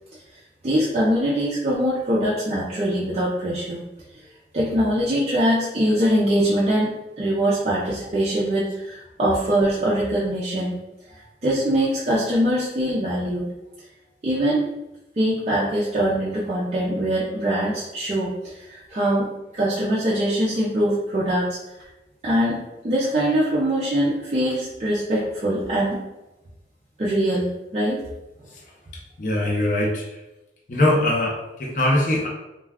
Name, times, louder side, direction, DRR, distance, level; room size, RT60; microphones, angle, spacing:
voice 1, 0.6-3.8 4.5-10.8 11.4-13.5 14.2-14.6 15.2-18.3 18.7-19.3 19.5-21.6 22.2-26.0 27.0-28.0, right 1 dB, 35° right, -7 dB, 0.4 m, -22 dB
voice 2, 29.2-30.0 30.7-32.3, left 1 dB, 45° left, -2 dB, 0.6 m, -21 dB
2.3 x 2.2 x 3.4 m, 0.96 s
head